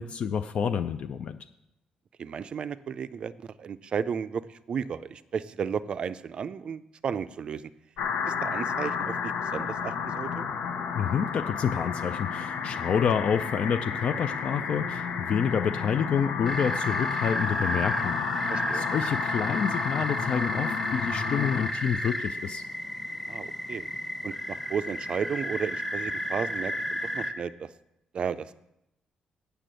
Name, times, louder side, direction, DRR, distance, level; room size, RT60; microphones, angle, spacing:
voice 1, 0.0-1.4 10.9-22.6, left 7 dB, 50° left, 9 dB, 0.4 m, -28 dB
voice 2, 2.2-3.3 3.6-7.7 8.3-10.5 18.5-18.8 23.3-23.9 24.2-26.7 27.1-27.7 28.1-28.5, right 7 dB, 45° right, 14 dB, 0.4 m, -33 dB
sound 1, 8.0-21.7, left 6 dB, 90° left, 1.0 m, -32 dB
sound 2, 16.4-27.3, left 1 dB, 10° left, 0.9 m, -32 dB
8.4 x 6.8 x 7.6 m, 0.84 s
cardioid pair, 155°, 2 cm